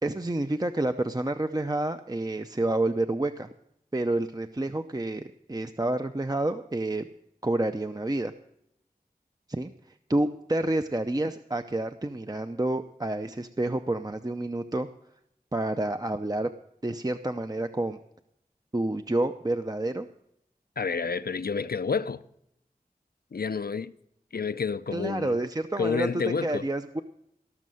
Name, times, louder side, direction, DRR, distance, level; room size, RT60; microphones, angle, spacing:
voice 1, 0.0-3.5 3.9-7.1 7.4-8.3 9.5-9.7 10.1-14.9 15.5-16.5 16.8-18.0 18.7-20.1 24.9-26.1 26.4-27.0, right 2 dB, 25° right, 0.6 m, -29 dB
voice 2, 20.8-22.2 23.3-23.9 24.3-25.4 25.8-26.7, left 5 dB, 75° left, 0.6 m, -29 dB
18.0 x 6.4 x 7.7 m
wide cardioid pair, 40°, 16 cm